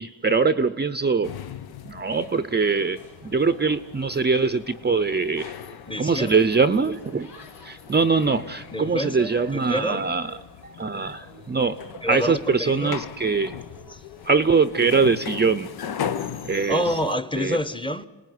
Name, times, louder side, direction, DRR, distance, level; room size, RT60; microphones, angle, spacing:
voice 1, 0.0-1.3 1.8-5.5 6.0-7.3 7.6-10.4 10.6-11.8 12.0-13.6 14.2-15.7 16.0-16.9 17.4-17.6, right 4 dB, 25° right, 0.8 m, -23 dB
sound 1, 1.2-17.1, left 8 dB, 60° left, 0.9 m, -39 dB
sound 2, 2.1-15.7, left 4 dB, 80° left, 3.9 m, -51 dB
voice 2, 5.9-6.4 8.7-10.1 12.0-13.0 13.9-14.0 16.7-18.1, equal, 10° left, 1.1 m, -28 dB
28.0 x 18.5 x 9.6 m
cardioid pair, 85°, 42 cm